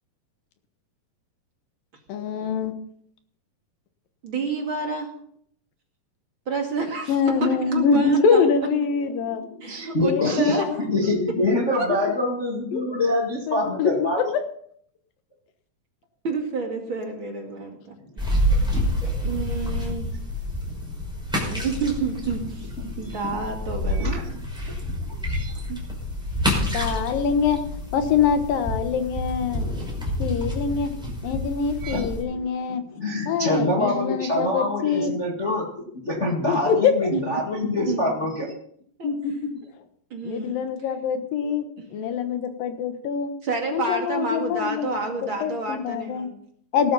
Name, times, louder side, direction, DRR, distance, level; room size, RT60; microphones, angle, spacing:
voice 1, 2.1-2.7 7.1-9.4 10.0-10.8 12.7-12.8 13.5-13.9 26.6-27.6 27.9-29.7 30.2-30.9 31.2-32.8 33.3-35.1 36.5-36.9 39.0-39.3 40.2-41.7 41.9-43.3 43.7-46.3 46.7-46.9, left 6 dB, 75° left, 8 dB, 2.9 m, -24 dB
voice 2, 4.2-5.1 6.5-7.2 7.4-8.5 9.6-10.6 11.8-11.9 16.2-18.4 19.0-20.1 21.4-22.7 23.0-24.2 24.6-24.7 25.7-25.8 37.1-37.2 37.9-38.1 39.0-39.1 40.1-40.5 43.4-46.3, right 4 dB, 40° right, 2 dB, 2.7 m, -29 dB
voice 3, 9.2-14.3 20.7-20.8 22.8-23.4 23.9-24.4 24.8-24.9 25.2-25.5 31.3-31.4 31.8-32.4 32.7-38.5, left 1 dB, 30° left, -1 dB, 1.5 m, -26 dB
sound 1, 18.2-32.2, equal, ahead, 5.2 m, -28 dB
18.5 x 12.5 x 4.1 m, 0.65 s
omnidirectional pair, 4.2 m